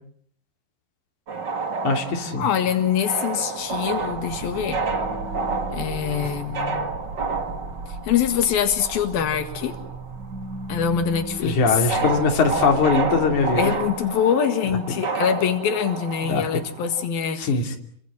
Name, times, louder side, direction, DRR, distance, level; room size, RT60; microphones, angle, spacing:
sound 1, 1.3-10.3 10.5-17.1, right 4 dB, 35° right, 2.4 m, -30 dB
voice 1, 1.8-2.5 11.4-13.7 16.2-16.6 17.4-17.8, left 4 dB, 55° left, 4 dB, 4.2 m, -21 dB
voice 2, 2.4-4.8 5.7-6.8 7.9-9.8 10.7-11.9 13.6-17.8, left 8 dB, 85° left, 7 dB, 3.7 m, -24 dB
sound 2, 3.6-14.2, right 2 dB, 55° right, 5.4 m, -37 dB
29.0 x 24.5 x 7.7 m, 0.62 s
omnidirectional pair, 4.1 m